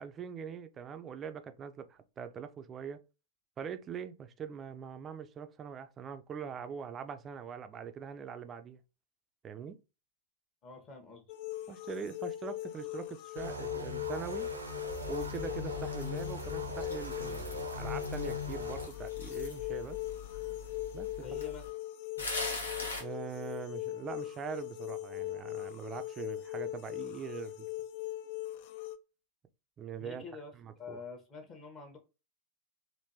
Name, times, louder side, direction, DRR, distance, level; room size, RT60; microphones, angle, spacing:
voice 1, 0.0-3.0 3.6-8.8 9.4-9.8 11.7-14.5 15.1-20.0 20.9-21.1 23.0-27.7 29.8-30.2 30.5-31.0, right 7 dB, 25° right, 0.4 m, -42 dB
voice 2, 10.6-11.2 21.2-21.6 30.0-30.5 30.8-32.0, left 4 dB, 30° left, 1.1 m, -46 dB
sound 1, 11.3-29.0, left 15 dB, 50° left, 0.3 m, -40 dB
sound 2, 13.4-18.9, left 2 dB, 80° right, 0.6 m, -40 dB
sound 3, 14.9-21.7 22.2-23.0, left 4 dB, 70° left, 0.8 m, -43 dB
3.4 x 2.6 x 2.8 m
figure-of-eight pair, 90°, 0 cm